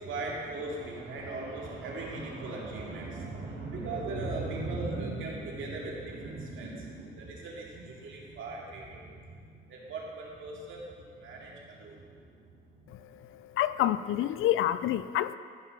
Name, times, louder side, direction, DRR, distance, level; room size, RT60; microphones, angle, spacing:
voice 1, 0.0-12.8, right 2 dB, 65° right, -3 dB, 2.4 m, -38 dB
voice 2, 13.6-15.4, left 12 dB, 75° left, 14 dB, 0.4 m, -27 dB
14.5 x 5.9 x 4.9 m, 2.1 s
cardioid pair, 90°, 21 cm